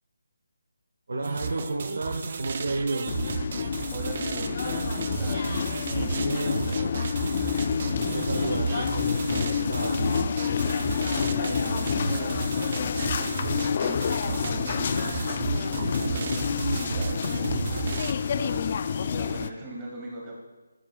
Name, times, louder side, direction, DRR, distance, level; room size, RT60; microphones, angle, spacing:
voice 1, 1.1-3.1 5.9-6.6 7.8-10.0, right 2 dB, 65° right, 1 dB, 1.1 m, -32 dB
sound 1, 1.2-18.1, right 5 dB, 40° right, 0.5 m, -33 dB
sound 2, 3.1-19.5, left 6 dB, 35° left, 0.4 m, -28 dB
voice 2, 3.9-5.5 6.0-7.6 11.1-15.3 15.9-17.8 18.4-20.4, right 1 dB, 15° right, -3 dB, 2.2 m, -40 dB
15.0 x 7.9 x 2.4 m, 1.2 s
figure-of-eight pair, 160°, 0 cm